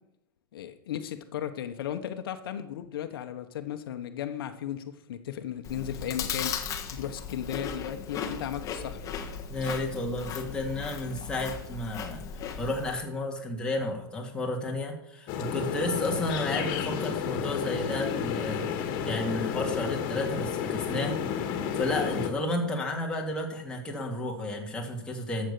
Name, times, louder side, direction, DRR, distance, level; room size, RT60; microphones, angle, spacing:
voice 1, 0.5-6.5 6.9-9.2, left 10 dB, 70° left, 8 dB, 1.2 m, -35 dB
Chewing mastication, 5.6-12.9, left 7 dB, 25° left, 1.5 m, -37 dB
voice 2, 9.5-12.2 12.6-18.6 19.1-25.5, left 1 dB, 5° left, -1 dB, 2.4 m, -32 dB
sound 1, 15.3-22.3, left 8 dB, 40° left, 2.1 m, -31 dB
12.5 x 7.3 x 6.9 m, 0.83 s
hypercardioid pair, 140°, 12 cm